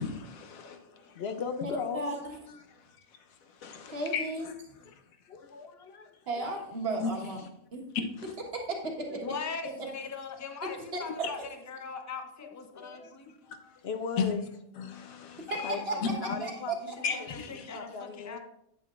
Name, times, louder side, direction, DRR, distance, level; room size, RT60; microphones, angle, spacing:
voice 1, 0.0-0.8 3.6-4.3 7.0-7.1 14.2-14.3 14.8-15.7 16.0-16.2 17.0-17.7, left 6 dB, 80° left, 6 dB, 1.3 m, -34 dB
voice 2, 0.5-2.0 2.5-2.6 4.9-5.0 5.3-6.6 8.0-8.1 9.2-9.3 12.4-13.2 13.4-14.4 15.6-18.4, left 5 dB, 60° left, 8 dB, 0.7 m, -39 dB
voice 3, 1.9-2.4 3.9-4.5 6.3-7.4 7.7-7.8 8.5-9.2 10.9-11.3 15.5-15.9 16.4-16.5, right 2 dB, 50° right, 0 dB, 1.6 m, -34 dB
voice 4, 9.2-11.4 11.7-13.3 15.9-16.3 16.8-18.4, left 5 dB, 25° left, 6 dB, 0.3 m, -40 dB
8.6 x 8.1 x 2.4 m, 0.76 s
omnidirectional pair, 1.4 m